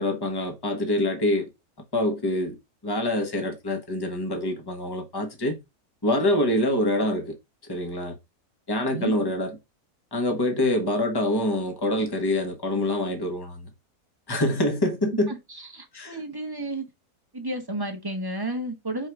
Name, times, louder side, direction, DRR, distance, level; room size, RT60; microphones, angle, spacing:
voice 1, 0.0-1.5 1.9-2.6 2.8-5.6 6.0-7.3 7.7-8.1 8.7-9.5 10.1-13.7 14.3-15.3 15.9-16.2, left 1 dB, 15° left, 1.3 m, -25 dB
voice 2, 15.3-16.9 17.3-19.1, right 1 dB, 15° right, 1.2 m, -32 dB
4.8 x 4.6 x 4.8 m
omnidirectional pair, 1.6 m